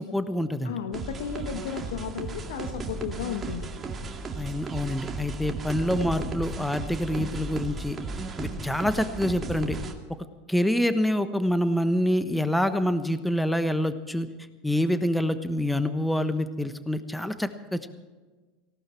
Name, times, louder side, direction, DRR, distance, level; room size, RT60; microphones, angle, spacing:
voice 1, 0.0-0.7 4.4-8.0 8.4-9.8 10.5-14.3 14.6-17.9, left 1 dB, 5° left, 11 dB, 1.1 m, -26 dB
voice 2, 0.6-3.7, left 8 dB, 70° left, 9 dB, 1.3 m, -34 dB
sound 1, 0.9-9.9, right 3 dB, 30° right, 2.2 m, -35 dB
18.5 x 17.5 x 4.5 m, 1.3 s
hypercardioid pair, 85°, 0 cm